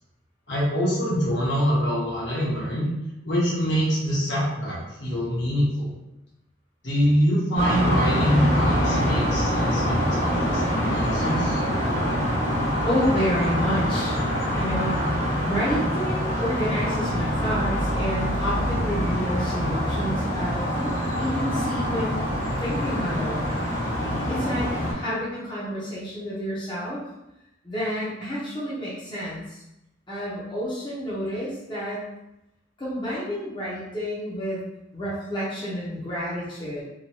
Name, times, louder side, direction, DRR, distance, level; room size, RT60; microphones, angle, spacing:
voice 1, 0.5-2.9 3.2-5.9 6.8-11.6, equal, 65° left, -6 dB, 1.1 m, -24 dB
sound 1, 7.5-24.9, equal, 90° left, 1.3 m, -25 dB
voice 2, 12.8-14.2 14.6-14.9 15.4-23.5 24.3-27.0 27.6-29.6 30.1-32.1 32.8-34.6 34.9-36.8, equal, 25° left, -9 dB, 0.7 m, -29 dB
3.0 x 2.2 x 2.7 m, 0.90 s
head